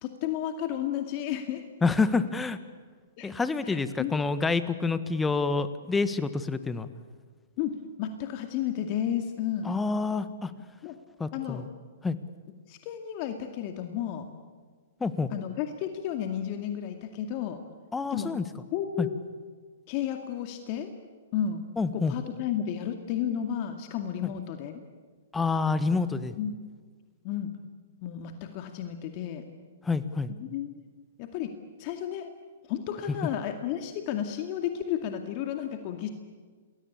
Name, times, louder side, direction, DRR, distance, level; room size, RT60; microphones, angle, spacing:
voice 1, 0.0-1.6 3.2-3.3 3.6-4.1 7.6-9.7 10.8-10.9 11.3-11.6 12.7-14.3 15.3-17.6 18.1-18.3 18.7-19.2 19.9-20.9 21.3-21.6 21.9-24.8 26.4-26.5 27.2-27.6 28.0-29.4 30.4-30.8 31.2-31.5 31.8-32.3 32.7-36.1, left 10 dB, 40° left, 6 dB, 2.2 m, -32 dB
voice 2, 1.8-2.6 3.2-6.9 9.6-10.5 11.2-11.7 12.0-12.2 15.0-15.3 17.9-18.4 19.0-19.1 21.8-22.1 24.2-24.3 25.3-26.3 29.8-30.3, left 4 dB, 10° left, 12 dB, 1.6 m, -27 dB
29.0 x 21.0 x 8.6 m, 1.6 s
figure-of-eight pair, 115°, 0 cm